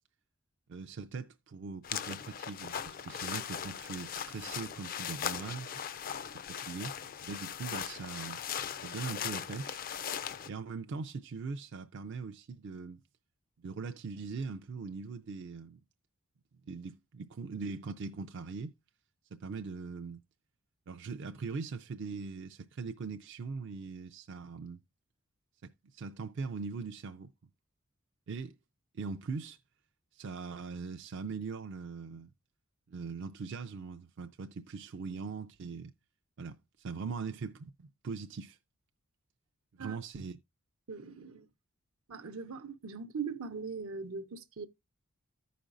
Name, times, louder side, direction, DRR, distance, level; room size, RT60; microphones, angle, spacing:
voice 1, 0.7-5.7 6.3-7.0 7.2-8.4 8.8-9.8 10.5-13.0 13.6-15.8 16.7-18.8 19.3-20.2 20.9-24.8 25.9-27.3 28.3-28.5 28.9-29.6 30.1-32.3 32.9-35.9 36.4-38.6 39.7-40.4, right 4 dB, 55° right, 0.4 m, -41 dB
sound 1, 1.8-10.5, left 8 dB, 40° left, 0.4 m, -39 dB
voice 2, 40.9-41.5 42.1-44.7, right 5 dB, 80° right, 0.7 m, -40 dB
14.5 x 5.1 x 2.5 m
head